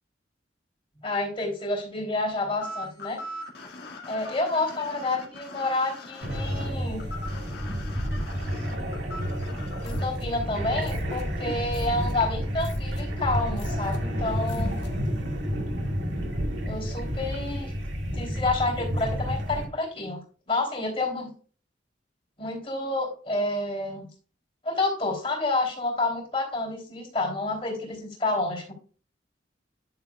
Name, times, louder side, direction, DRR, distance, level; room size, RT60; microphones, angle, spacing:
voice 1, 1.0-3.2 4.1-7.1 9.8-14.7 16.6-17.7 18.1-20.2 20.5-21.3 22.4-24.1 24.6-28.7, left 2 dB, 30° left, -3 dB, 3.4 m, -29 dB
sound 1, 2.6-10.0, left 1 dB, 60° left, 1.9 m, -41 dB
sound 2, 6.2-19.7, equal, 80° right, 2.3 m, -30 dB
sound 3, 9.8-15.2, equal, 75° left, 1.7 m, -40 dB
10.5 x 6.7 x 2.4 m, 0.41 s
head